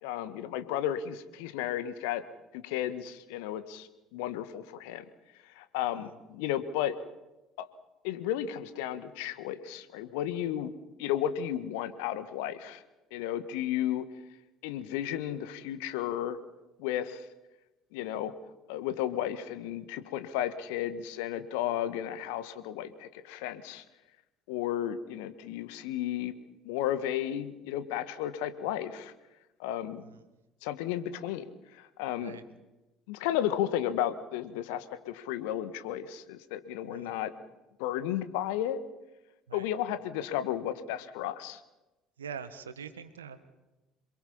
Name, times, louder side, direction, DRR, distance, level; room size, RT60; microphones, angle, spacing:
voice 1, 0.0-2.2 2.5-5.0 5.6-6.9 7.6-7.7 8.0-10.7 11.0-12.8 13.1-14.0 14.6-16.4 16.8-17.2 17.9-18.3 18.7-23.8 24.5-26.3 26.6-29.1 29.6-30.0 30.6-31.4 31.7-32.4 33.1-37.3 37.8-38.8 39.5-41.6, left 11 dB, 65° left, 11 dB, 1.6 m, -33 dB
voice 2, 42.2-43.6, right 6 dB, 80° right, 12 dB, 1.5 m, -44 dB
27.5 x 23.0 x 5.6 m, 1.0 s
figure-of-eight pair, 60°, 0 cm